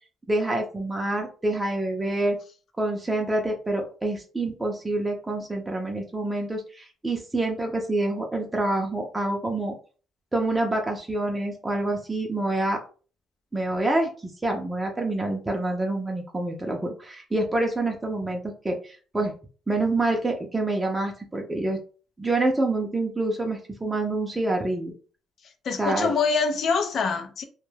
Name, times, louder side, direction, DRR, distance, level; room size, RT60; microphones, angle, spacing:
voice 1, 0.3-2.4 2.8-9.7 10.3-12.8 13.5-19.3 19.7-21.8 22.2-24.9 25.8-26.1, right 2 dB, 15° right, 0.5 m, -27 dB
voice 2, 25.6-27.4, left 5 dB, 60° left, 0.4 m, -25 dB
2.2 x 2.1 x 3.2 m
cardioid pair, 90°, 0 cm